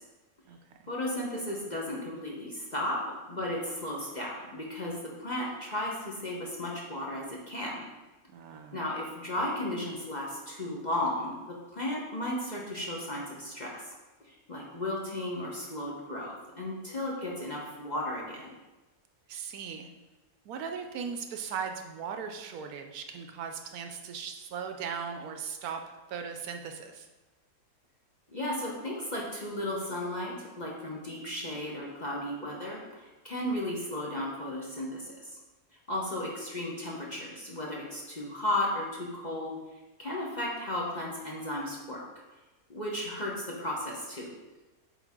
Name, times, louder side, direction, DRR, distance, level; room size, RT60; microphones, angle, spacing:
voice 1, 0.9-3.0 3.3-7.8 8.7-13.8 14.2-18.5 28.3-35.3 35.9-39.6 40.0-42.0 42.7-43.3 43.6-44.3, left 1 dB, 35° left, -4 dB, 0.9 m, -34 dB
voice 2, 8.3-8.8 19.3-19.9 20.5-25.8 26.1-27.1, right 6 dB, 75° right, 5 dB, 1.0 m, -38 dB
8.3 x 3.9 x 3.6 m, 1.1 s
omnidirectional pair, 1.7 m